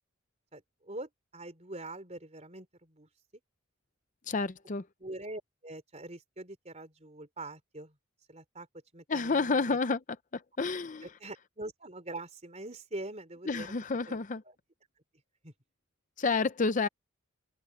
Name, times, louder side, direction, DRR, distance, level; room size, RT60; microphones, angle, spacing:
voice 1, 0.5-3.1 5.0-8.0 8.3-8.7 8.9-9.8 11.0-13.7 14.1-14.2 14.4-14.5 15.4-15.5, right 2 dB, 30° right, 3.7 m, -43 dB
voice 2, 4.3-4.8 9.1-10.0 10.3-11.1 13.5-14.4 16.2-16.9, left 4 dB, 35° left, 0.6 m, -29 dB
head